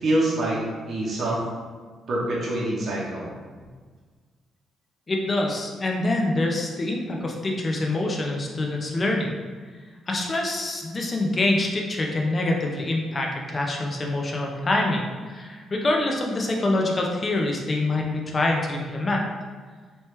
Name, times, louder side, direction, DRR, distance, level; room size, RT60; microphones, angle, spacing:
voice 1, 0.0-0.6 0.9-1.4 2.1-3.3, right 1 dB, 50° right, -6 dB, 0.9 m, -25 dB
voice 2, 5.1-9.3 10.1-19.2, left 2 dB, 35° left, 0 dB, 0.6 m, -25 dB
3.2 x 3.1 x 3.2 m, 1.5 s
cardioid pair, 90°, 0 cm